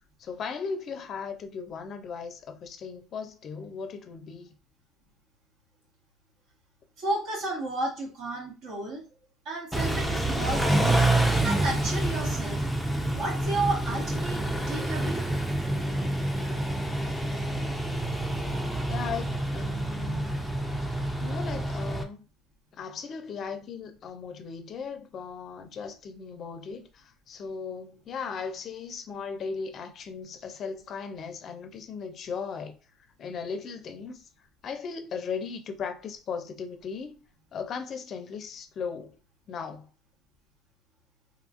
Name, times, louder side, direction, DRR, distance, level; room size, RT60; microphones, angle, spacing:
voice 1, 0.2-4.6 18.9-20.4 21.2-22.2 22.7-32.8 33.2-34.3 34.6-37.2 37.5-39.2 39.5-39.9, left 5 dB, 45° left, 0.4 m, -37 dB
voice 2, 7.0-9.0 9.4-11.1 11.4-12.7 13.1-14.4 14.7-15.2, right 2 dB, 60° right, 1.2 m, -32 dB
Car / Idling / Accelerating revving vroom, 9.7-22.0, right 1 dB, 5° right, 0.5 m, -27 dB
2.9 x 2.4 x 2.5 m
supercardioid pair, 95°, 0 cm